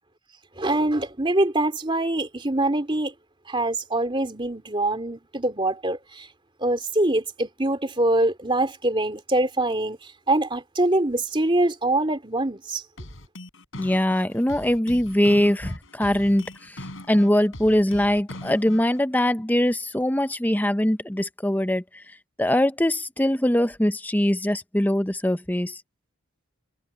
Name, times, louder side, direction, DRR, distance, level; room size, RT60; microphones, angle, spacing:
voice 1, 0.6-3.1 3.5-6.3 6.6-12.8, right 1 dB, 25° right, 3.1 m, -24 dB
sound 1, 13.0-19.0, left 1 dB, 60° left, 7.3 m, -40 dB
voice 2, 13.8-22.0 22.4-25.8, left 1 dB, 10° left, 0.6 m, -22 dB
head